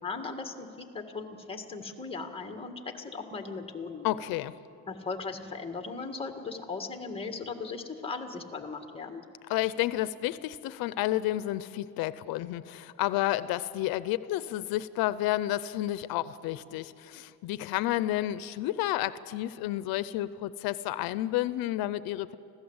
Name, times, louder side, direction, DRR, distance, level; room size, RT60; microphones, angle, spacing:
voice 1, 0.0-4.1 4.9-9.2, left 4 dB, 15° left, 5 dB, 1.8 m, -38 dB
voice 2, 4.0-4.5 9.5-22.4, left 15 dB, 90° left, 15 dB, 0.7 m, -31 dB
25.5 x 16.0 x 8.0 m, 2.7 s
cardioid pair, 135°, 35 cm